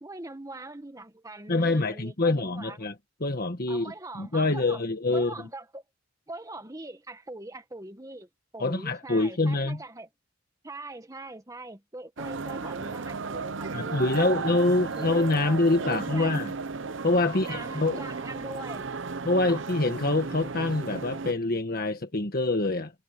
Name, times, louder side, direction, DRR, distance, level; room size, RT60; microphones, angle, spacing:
voice 1, 0.0-2.9 3.7-4.8 5.1-5.8 6.3-10.1 10.6-16.4 17.2-18.9 19.5-19.7, right 2 dB, 15° right, 1.7 m, -42 dB
voice 2, 1.5-2.9 3.2-5.3 8.6-9.8 13.7-16.5 17.0-18.0 19.2-22.9, left 2 dB, 50° left, 1.5 m, -25 dB
sound 1, 12.2-21.3, right 4 dB, 75° right, 0.8 m, -34 dB
head